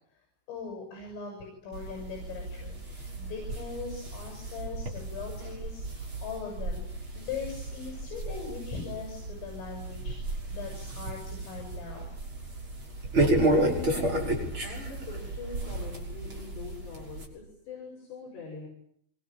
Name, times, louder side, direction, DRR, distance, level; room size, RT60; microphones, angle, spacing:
voice 1, 0.5-6.8 7.2-12.0, left 5 dB, 80° left, 1 dB, 10.5 m, -40 dB
sound 1, 1.7-17.3, right 1 dB, 25° right, 6.5 m, -32 dB
voice 2, 2.0-2.4 3.0-3.1 13.4-18.7, left 4 dB, 60° left, -1 dB, 9.1 m, -43 dB
26.5 x 25.0 x 9.1 m, 0.67 s
omnidirectional pair, 5.7 m